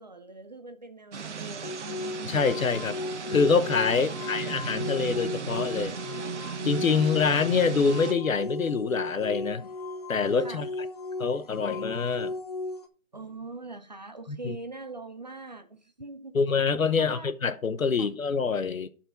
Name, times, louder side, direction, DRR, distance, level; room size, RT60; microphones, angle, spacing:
voice 1, 0.0-2.0 3.9-5.1 10.4-10.7 13.1-16.4 17.0-17.3 18.0-18.1, right 3 dB, 35° right, 0.6 m, -43 dB
sound 1, 1.1-8.1, right 6 dB, 60° right, 0.9 m, -37 dB
sound 2, 1.6-12.9, left 3 dB, 30° left, 0.7 m, -36 dB
voice 2, 2.2-3.0 3.3-6.0 6.6-9.7 10.1-10.7 11.2-12.3 14.3-14.6 16.3-18.9, left 5 dB, 75° left, 1.1 m, -25 dB
11.5 x 4.5 x 4.5 m
figure-of-eight pair, 160°, 40 cm